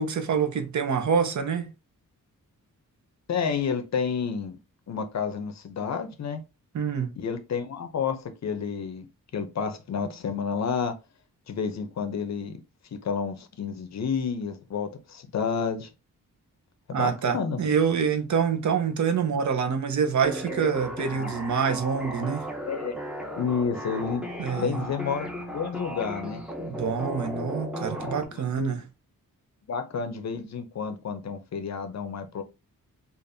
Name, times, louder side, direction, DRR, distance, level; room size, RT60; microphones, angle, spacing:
voice 1, 0.0-1.7 6.7-7.1 16.9-22.5 24.4-24.8 26.6-28.8, right 6 dB, 60° right, 0.7 m, -26 dB
voice 2, 3.3-4.6 4.9-6.4 7.2-9.1 9.3-11.0 11.5-12.6 12.9-15.9 16.9-17.6 21.1-21.3 22.7-23.0 23.3-24.3 24.5-26.4 28.0-28.7 29.7-32.4, left 6 dB, 55° left, 0.6 m, -30 dB
sound 1, 20.2-28.2, equal, 5° right, 0.6 m, -35 dB
5.1 x 2.5 x 2.6 m
wide cardioid pair, 175°, 33 cm